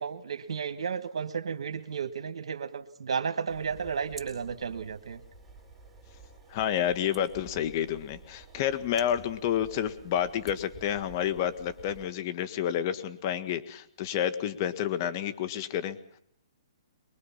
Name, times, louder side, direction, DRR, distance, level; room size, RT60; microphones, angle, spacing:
voice 1, 0.0-5.2, right 6 dB, 75° right, 9 dB, 1.5 m, -33 dB
sound 1, 3.5-12.1, right 4 dB, 5° right, 4.9 m, -51 dB
voice 2, 6.5-16.0, left 10 dB, 40° left, 11 dB, 1.9 m, -30 dB
24.0 x 22.0 x 5.8 m, 0.71 s
hypercardioid pair, 150°, 3 cm